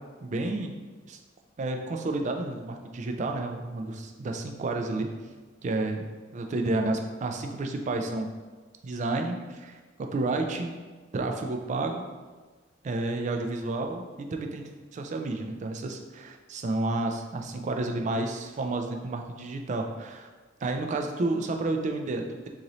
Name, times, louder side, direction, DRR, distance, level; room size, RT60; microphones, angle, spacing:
voice 1, 0.2-0.8 1.1-1.2 1.6-5.1 5.6-6.1 6.3-8.3 8.8-10.7 11.1-12.0 12.8-14.6 14.9-20.3 20.6-22.5, right 2 dB, 40° right, 4 dB, 0.3 m, -31 dB
3.0 x 2.6 x 3.9 m, 1.4 s
head